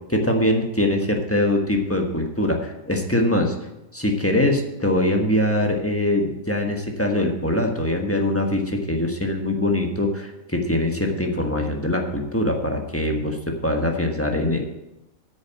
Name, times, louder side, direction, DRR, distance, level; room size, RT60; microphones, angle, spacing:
voice 1, 0.1-3.6 3.9-14.6, left 1 dB, 10° left, 2 dB, 1.3 m, -23 dB
9.3 x 6.6 x 8.2 m, 0.92 s
omnidirectional pair, 1.4 m